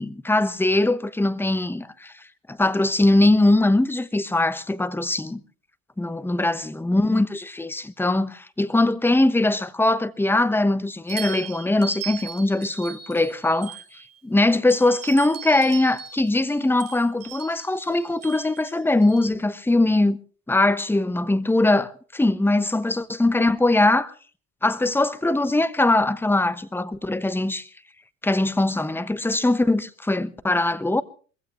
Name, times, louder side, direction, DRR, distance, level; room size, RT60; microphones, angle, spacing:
voice 1, 0.0-2.1 2.5-5.4 6.0-13.8 14.2-20.2 20.5-24.1 24.6-27.7 28.2-31.0, left 2 dB, 5° left, 1.0 m, -21 dB
sound 1, 11.1-14.2 14.7-19.3, right 9 dB, 45° right, 5.3 m, -39 dB
23.5 x 15.5 x 3.1 m
hypercardioid pair, 70°, 36 cm